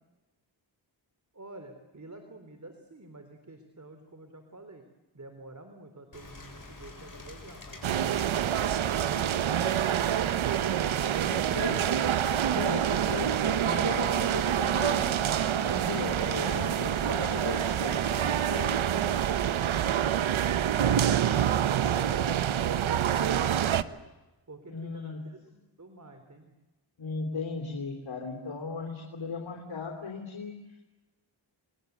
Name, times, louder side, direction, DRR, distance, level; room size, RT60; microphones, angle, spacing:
voice 1, 1.3-4.8 5.1-9.1 24.5-26.5, right 2 dB, 35° right, 7 dB, 3.6 m, -49 dB
Rain, 6.1-18.5, left 3 dB, 45° left, 7.6 m, -47 dB
sound 1, 7.8-23.8, right 10 dB, 90° right, 0.9 m, -27 dB
voice 2, 11.2-15.2 15.5-18.9 24.7-25.2 27.0-30.5, left 4 dB, 80° left, 0 dB, 3.6 m, -37 dB
30.0 x 21.5 x 8.2 m, 1.1 s
cardioid pair, 45°, 46 cm